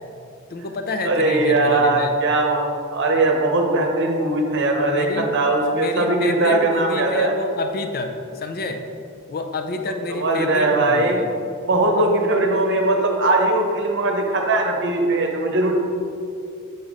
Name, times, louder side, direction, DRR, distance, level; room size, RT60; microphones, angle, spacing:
voice 1, 0.5-2.2 4.9-5.3 5.7-8.8 9.3-11.3, left 2 dB, 45° left, 5 dB, 0.5 m, -28 dB
voice 2, 1.0-7.3 10.2-11.2 11.6-15.7, right 2 dB, 55° right, 2 dB, 0.9 m, -20 dB
8.1 x 4.2 x 3.7 m, 2.6 s
head